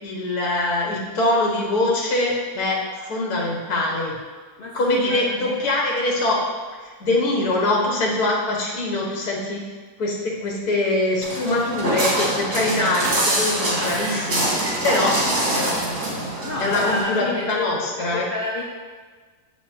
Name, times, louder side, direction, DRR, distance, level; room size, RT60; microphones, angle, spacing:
voice 1, 0.0-4.2 4.7-6.4 6.8-9.6 10.0-15.2 15.5-15.8 16.6-18.2, left 2 dB, 75° left, -2 dB, 2.0 m, -23 dB
voice 2, 4.6-5.7 16.4-18.6, left 2 dB, 50° left, -2 dB, 0.7 m, -29 dB
Walk footsteps, 11.2-17.0, right 1 dB, 85° right, 2.4 m, -24 dB
7.2 x 6.6 x 4.6 m, 1.5 s
omnidirectional pair, 1.6 m